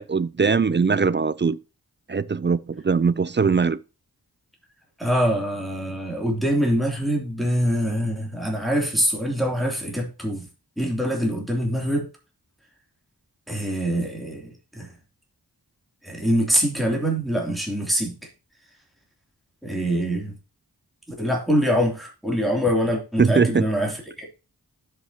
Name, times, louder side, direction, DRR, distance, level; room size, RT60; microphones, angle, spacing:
voice 1, 0.0-1.6 2.1-3.8 23.2-23.6, right 5 dB, 30° right, 0.4 m, -21 dB
voice 2, 5.0-10.5 10.8-12.1 13.5-14.9 16.0-18.2 19.6-20.4 21.1-24.3, equal, ahead, 3.0 m, -24 dB
12.5 x 5.7 x 2.9 m
wide cardioid pair, 45°, 39 cm